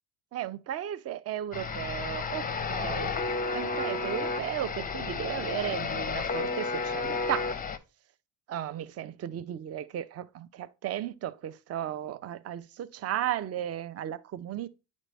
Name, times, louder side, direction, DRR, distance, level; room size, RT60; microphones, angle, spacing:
voice 1, 0.3-2.4 2.7-3.2 3.5-7.5 8.5-14.7, right 11 dB, 35° right, 0.4 m, -35 dB
sound 1, 1.5-7.8, left 4 dB, 20° left, 0.5 m, -32 dB
9.0 x 4.1 x 3.3 m
cardioid pair, 100°, 45 cm